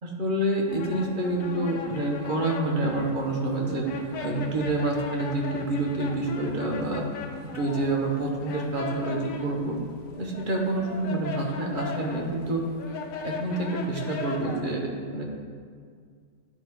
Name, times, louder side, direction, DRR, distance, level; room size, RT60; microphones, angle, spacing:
voice 1, 0.0-3.8 4.2-7.0 7.5-9.8 10.2-12.6 13.2-15.2, right 2 dB, 45° right, -1 dB, 1.0 m, -28 dB
sound 1, 0.7-14.6, left 5 dB, 90° left, 1.1 m, -38 dB
10.0 x 3.6 x 4.6 m, 2.1 s
omnidirectional pair, 1.3 m